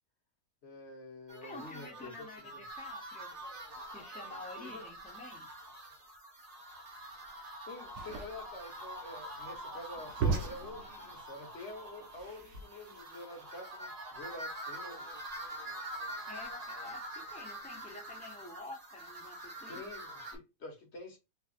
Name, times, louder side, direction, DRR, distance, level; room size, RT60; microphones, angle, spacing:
voice 1, 0.6-2.6 4.6-4.8 7.6-15.1 19.7-21.2, left 2 dB, 45° left, 1.3 m, -47 dB
voice 2, 1.3-3.4 3.9-5.5 16.3-19.8, left 2 dB, 10° left, 0.4 m, -49 dB
sound 1, 1.3-20.4, right 1 dB, 30° right, 0.8 m, -45 dB
sound 2, 7.9-13.0, right 4 dB, 80° right, 1.6 m, -38 dB
4.7 x 2.6 x 2.5 m
omnidirectional pair, 1.7 m